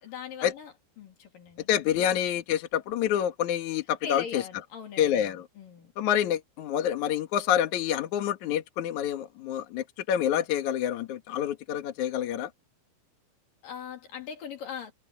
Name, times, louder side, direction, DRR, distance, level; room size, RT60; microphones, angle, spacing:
voice 1, 0.0-1.7 4.0-5.9 13.6-14.9, left 7 dB, 50° left, 4.3 m, -40 dB
voice 2, 1.7-4.4 5.0-5.4 6.0-12.5, left 10 dB, 65° left, 1.9 m, -27 dB
omnidirectional pair, 5.5 m